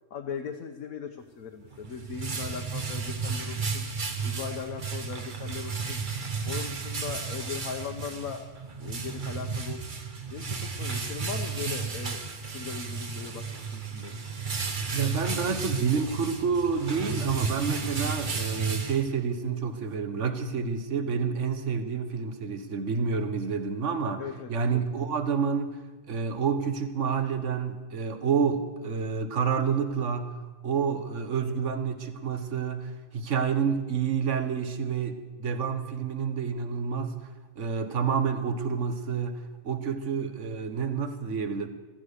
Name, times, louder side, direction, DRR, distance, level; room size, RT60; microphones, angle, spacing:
voice 1, 0.1-3.8 4.2-6.0 6.4-8.4 8.8-9.9 10.3-12.2 12.5-14.1 24.2-24.9, left 7 dB, 75° left, 4 dB, 1.3 m, -39 dB
sound 1, 1.6-19.5, right 5 dB, 35° right, 1.3 m, -33 dB
voice 2, 14.9-24.2 24.5-25.8 26.1-30.3 30.6-37.1 37.6-41.7, right 6 dB, 55° right, 9 dB, 1.5 m, -29 dB
15.0 x 14.0 x 6.6 m, 1.3 s
omnidirectional pair, 1.5 m